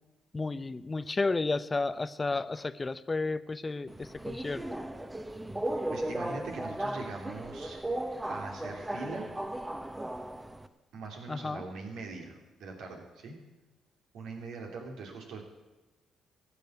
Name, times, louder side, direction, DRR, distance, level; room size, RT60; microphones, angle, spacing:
voice 1, 0.3-4.8 11.3-11.6, left 3 dB, 30° left, 15 dB, 0.7 m, -32 dB
Subway metro underground, 3.9-10.7, right 1 dB, 15° right, 1.1 m, -36 dB
voice 2, 5.9-7.8 8.3-9.3 10.9-13.4 14.1-15.4, right 3 dB, 75° right, 1 dB, 2.9 m, -42 dB
14.5 x 7.0 x 9.4 m, 1.1 s
hypercardioid pair, 50°, 0 cm